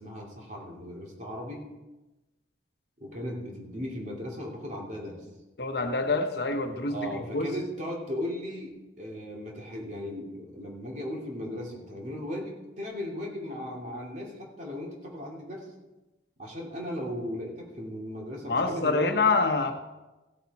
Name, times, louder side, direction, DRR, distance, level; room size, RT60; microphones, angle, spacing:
voice 1, 0.0-1.6 3.0-5.2 6.9-15.7 16.4-19.2, left 1 dB, 40° right, -2 dB, 2.6 m, -37 dB
voice 2, 5.6-7.5 18.5-19.7, left 3 dB, 60° left, 6 dB, 1.0 m, -26 dB
15.5 x 8.7 x 4.2 m, 1.1 s
head